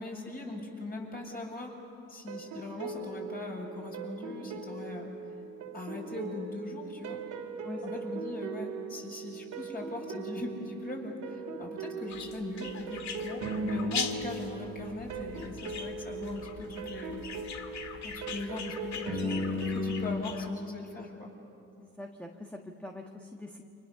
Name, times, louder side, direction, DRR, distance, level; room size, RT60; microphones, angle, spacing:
voice 1, 0.0-1.8 2.1-5.1 5.7-7.2 7.8-17.2 18.0-21.3, left 2 dB, 30° left, -1 dB, 7.3 m, -40 dB
sound 1, 2.3-20.2, right 2 dB, 80° right, 3.0 m, -38 dB
sound 2, 12.1-20.5, left 6 dB, 65° left, 1.8 m, -41 dB
voice 2, 21.8-23.6, left 1 dB, 5° left, 2 dB, 1.6 m, -43 dB
29.5 x 25.5 x 6.9 m, 2.6 s
cardioid pair, 90°, 30 cm